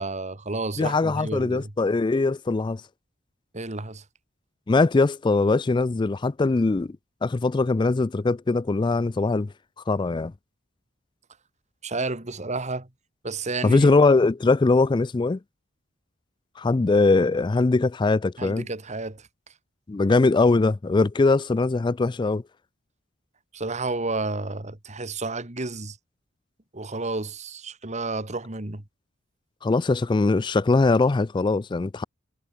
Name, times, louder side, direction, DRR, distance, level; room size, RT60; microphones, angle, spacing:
voice 1, 0.0-1.7 3.5-4.0 11.8-12.9 13.2-13.9 18.4-19.3 23.5-26.0 26.7-28.8, right 3 dB, 35° right, 1.9 m, -31 dB
voice 2, 0.8-2.8 4.7-7.0 7.2-9.5 9.9-10.3 13.6-15.4 16.6-18.7 19.9-22.4 29.6-32.0, left 3 dB, 25° left, 0.3 m, -21 dB
head